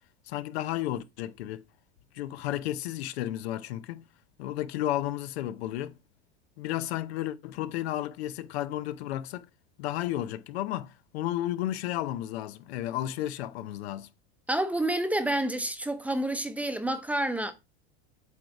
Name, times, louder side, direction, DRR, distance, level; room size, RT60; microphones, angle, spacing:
voice 1, 0.3-1.6 2.1-4.0 4.4-6.0 6.6-9.5 9.8-14.1, left 13 dB, 85° left, 0.7 m, -33 dB
voice 2, 14.5-17.5, right 1 dB, 5° right, 0.7 m, -29 dB
8.3 x 3.3 x 4.7 m
supercardioid pair, 130°, 31 cm